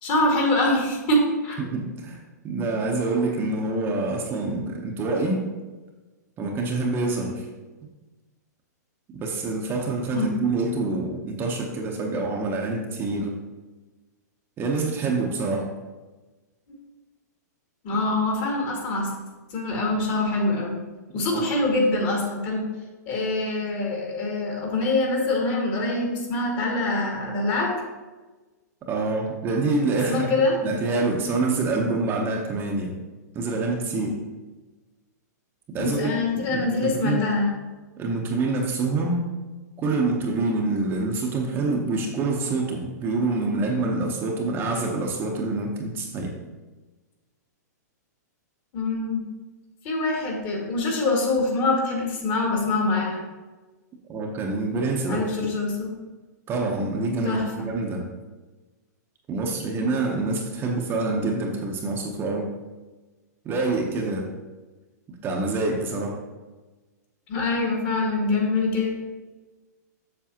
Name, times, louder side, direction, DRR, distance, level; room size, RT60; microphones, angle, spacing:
voice 1, 0.0-1.6 10.1-10.4 16.7-16.8 17.8-19.1 19.5-20.8 21.1-22.7 23.1-27.8 30.1-30.6 35.8-37.5 48.7-49.3 49.8-53.2 55.1-55.9 57.2-57.7 67.3-69.0, left 2 dB, 40° left, -1 dB, 2.1 m, -24 dB
voice 2, 1.6-5.5 6.4-7.5 9.1-13.4 14.6-15.7 21.3-21.4 28.9-30.3 30.6-33.0 33.3-34.2 35.7-37.2 38.0-39.3 39.8-46.4 54.1-55.2 56.5-58.1 59.3-62.5 63.4-64.3 65.2-66.2, right 3 dB, 25° right, 0 dB, 0.8 m, -26 dB
7.3 x 6.6 x 2.9 m, 1.2 s
hypercardioid pair, 140°, 10 cm